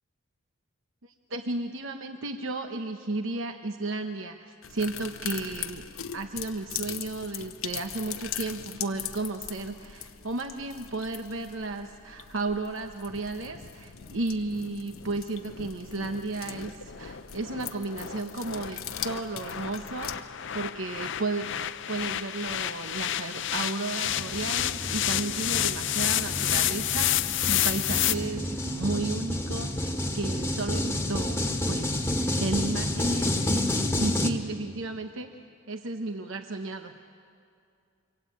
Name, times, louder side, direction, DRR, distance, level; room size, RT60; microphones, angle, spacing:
voice 1, 1.0-5.8 6.1-21.5 21.9-35.3 35.7-36.9, right 2 dB, 70° right, 6 dB, 1.0 m, -33 dB
sound 1, 4.6-20.1, left 10 dB, 80° left, 1.1 m, -40 dB
sound 2, 13.1-28.2, left 12 dB, 60° left, 0.6 m, -31 dB
sound 3, 24.0-34.3, left 1 dB, 10° left, 1.6 m, -30 dB
26.5 x 24.0 x 8.5 m, 2.3 s
head